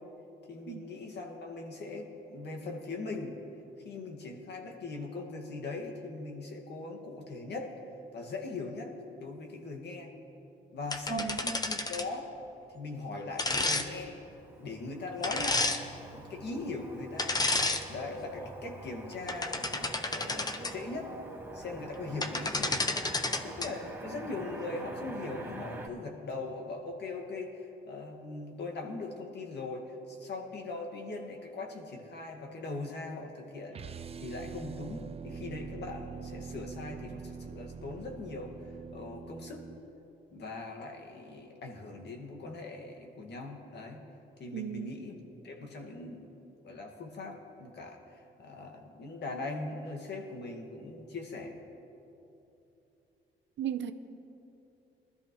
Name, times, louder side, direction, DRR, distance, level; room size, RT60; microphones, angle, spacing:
voice 1, 0.5-3.4 3.8-7.7 8.1-10.1 10.7-12.3 12.7-14.2 14.6-15.8 16.1-17.4 17.9-21.1 21.5-23.0 23.4-38.5 38.9-39.7 40.3-44.0 44.4-46.3 46.6-51.6, left 3 dB, 60° left, 1 dB, 1.9 m, -40 dB
sound 1, 10.9-12.1 13.4-13.8 15.2-15.8 17.2-17.8 18.3-18.5 19.1-20.7 21.9-22.0 22.2-23.7, left 2 dB, 20° left, 0.8 m, -31 dB
Motor vehicle (road), 14.0-25.9, right 2 dB, 10° right, 1.5 m, -46 dB
sound 2, 33.7-39.8, right 6 dB, 30° right, 0.4 m, -44 dB
voice 2, 44.5-45.0 53.6-53.9, right 10 dB, 65° right, 9 dB, 0.7 m, -35 dB
20.0 x 13.0 x 3.2 m, 2.9 s
cardioid pair, 90°, 20 cm